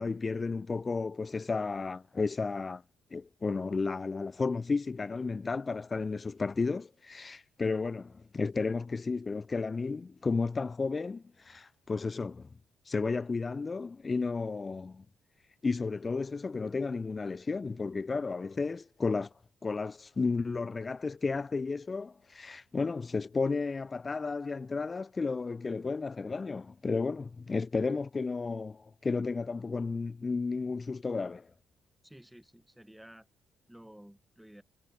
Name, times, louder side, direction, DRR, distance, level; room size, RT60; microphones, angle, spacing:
voice 1, 0.0-2.8 3.1-12.5 12.9-15.0 15.6-19.3 19.6-31.5, left 4 dB, 30° left, 0.3 m, -33 dB
voice 2, 32.0-33.3 33.7-34.6, equal, 5° right, 2.7 m, -53 dB
cardioid pair, 90°, 0 cm